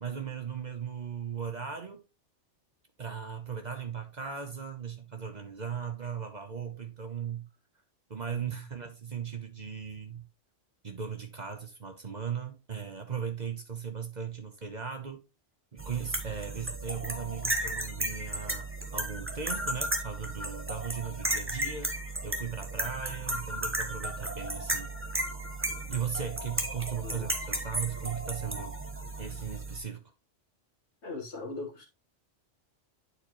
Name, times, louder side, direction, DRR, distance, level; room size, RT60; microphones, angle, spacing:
voice 1, 0.0-2.0 3.0-7.5 8.1-10.3 10.8-15.2 15.7-18.7 18.9-21.9 22.2-24.9 25.9-28.8 29.2-30.0, right 7 dB, 40° right, 1.0 m, -37 dB
sound 1, 15.8-29.8, right 1 dB, 10° right, 0.9 m, -34 dB
voice 2, 31.0-31.9, left 2 dB, 65° left, 2.0 m, -39 dB
9.4 x 4.4 x 3.1 m
omnidirectional pair, 1.2 m